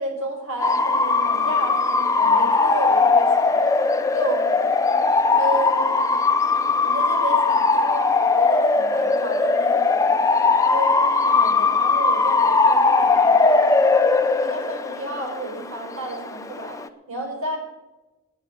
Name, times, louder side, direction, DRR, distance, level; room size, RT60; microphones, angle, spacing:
voice 1, 0.0-3.7 4.1-4.5 5.4-6.1 6.8-10.2 10.6-13.7 14.4-17.6, right 1 dB, 85° right, 1 dB, 4.7 m, -31 dB
Bark / Motor vehicle (road) / Siren, 0.6-16.9, left 3 dB, 15° left, 0.6 m, -19 dB
10.5 x 9.2 x 9.0 m, 1.1 s
head